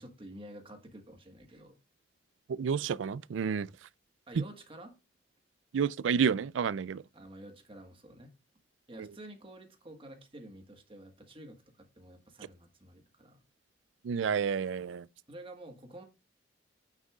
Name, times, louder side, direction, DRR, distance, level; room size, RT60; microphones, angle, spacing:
voice 1, 0.0-1.8 4.3-4.9 7.1-8.3 8.9-13.4 15.3-16.0, right 1 dB, 30° right, 1.5 m, -50 dB
voice 2, 2.5-3.7 4.4-4.5 5.7-7.0 9.0-9.1 14.0-15.1, right 6 dB, 80° right, 0.4 m, -30 dB
9.1 x 6.5 x 2.4 m
head